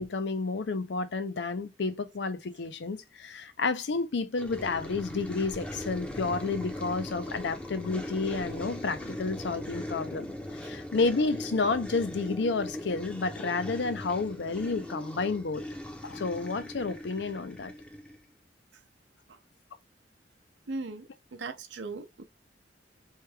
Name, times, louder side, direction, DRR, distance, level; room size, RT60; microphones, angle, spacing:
voice 1, 0.0-15.7 16.0-17.7, left 4 dB, 75° left, 0.5 m, -31 dB
sound 1, 4.4-18.2, left 1 dB, 5° left, 0.6 m, -39 dB
voice 2, 20.7-22.2, right 3 dB, 80° right, 0.6 m, -38 dB
3.2 x 2.2 x 3.2 m
head